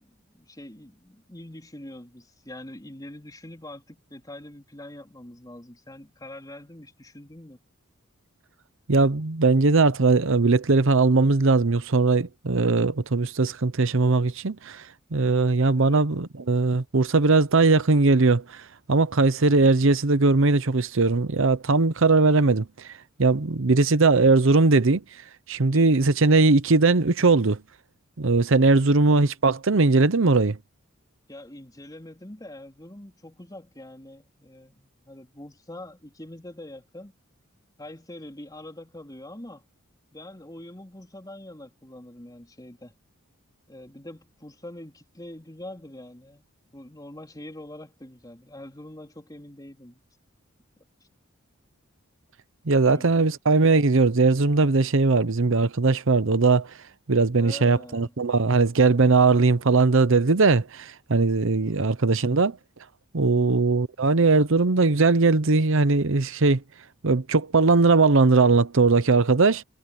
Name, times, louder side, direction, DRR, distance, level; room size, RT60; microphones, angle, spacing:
voice 1, 0.0-7.6 15.7-16.0 25.7-26.0 28.7-29.1 31.3-37.1 37.8-39.6 40.1-42.9 43.7-46.4 46.7-50.0 52.8-53.3 57.4-58.1 61.6-62.0 63.3-63.6, left 1 dB, 20° left, 4.0 m, -44 dB
voice 2, 8.9-27.6 28.2-30.6 52.7-56.8 57.1-62.6 63.1-66.6 67.0-69.6, right 3 dB, 65° right, 0.9 m, -20 dB
head